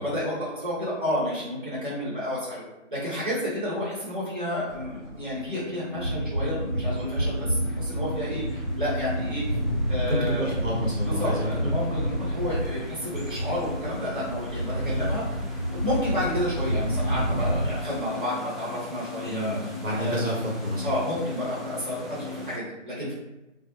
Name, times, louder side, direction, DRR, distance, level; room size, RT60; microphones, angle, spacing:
voice 1, 0.0-2.6 2.9-9.4 9.9-10.5 11.1-15.2 15.7-20.2 20.8-23.1, left 1 dB, 40° right, -9 dB, 0.9 m, -31 dB
sound 1, 4.7-17.8, equal, 65° right, 1.1 m, -29 dB
sound 2, 5.5-22.6, left 3 dB, 50° left, 0.6 m, -41 dB
sound 3, 6.1-22.6, left 2 dB, ahead, 0.3 m, -43 dB
voice 2, 10.1-11.7 19.2-21.0, equal, 85° right, -5 dB, 1.1 m, -29 dB
2.2 x 2.1 x 2.9 m, 0.96 s
figure-of-eight pair, 180°, 38 cm